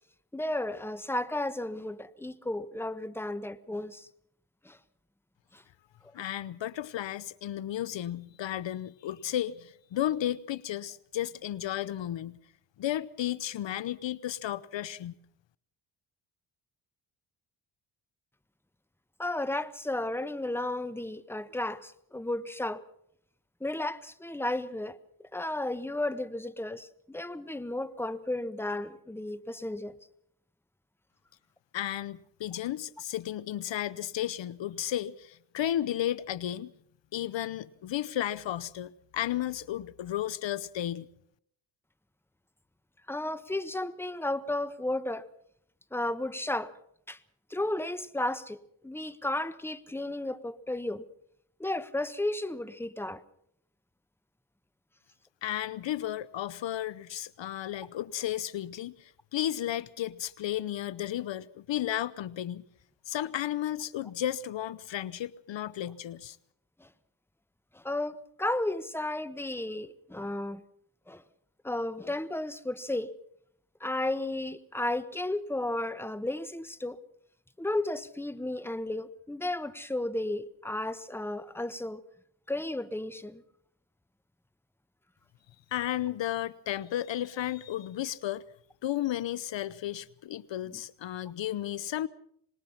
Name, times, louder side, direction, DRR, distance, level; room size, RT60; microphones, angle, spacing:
voice 1, 0.3-4.1 4.6-4.8 5.5-5.6 19.2-22.8 23.6-25.0 25.3-29.9 43.1-45.3 45.9-46.7 47.1-47.2 47.5-51.0 51.6-53.2 66.8-66.9 67.7-70.6 71.1-71.2 71.6-73.1 73.8-77.0 77.6-82.0 82.5-83.4 85.9-86.0 90.7-90.8, left 1 dB, 5° left, 1.3 m, -33 dB
voice 2, 6.1-12.4 12.8-15.2 31.7-36.7 37.1-41.1 55.4-62.6 63.1-66.4 85.7-88.4 88.8-92.1, left 12 dB, 65° left, 0.8 m, -33 dB
25.5 x 20.5 x 5.8 m
cardioid pair, 75°, 48 cm